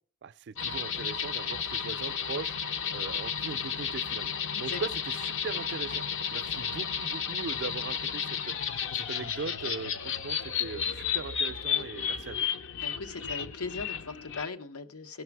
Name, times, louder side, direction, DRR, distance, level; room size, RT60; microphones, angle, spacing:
voice 1, 0.2-2.6 2.9-4.3 4.6-6.0 6.3-8.5 8.9-12.5, right 4 dB, 50° right, 0.4 m, -39 dB
sound 1, 0.6-14.5, left 7 dB, 60° left, 0.6 m, -33 dB
voice 2, 12.8-15.2, left 4 dB, 90° left, 0.9 m, -39 dB
16.0 x 6.0 x 4.6 m
head